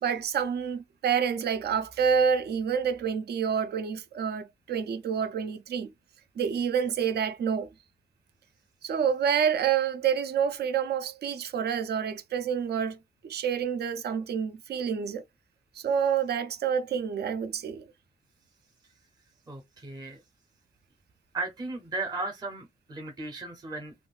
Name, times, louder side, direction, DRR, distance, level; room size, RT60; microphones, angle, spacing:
voice 1, 0.0-5.9 6.4-7.7 8.8-13.0 13.2-15.2 15.8-17.9, right 7 dB, 65° right, 0.6 m, -28 dB
voice 2, 19.5-20.2 21.3-23.9, right 3 dB, 20° right, 0.7 m, -36 dB
3.5 x 2.3 x 2.4 m
cardioid pair, 105°, 18 cm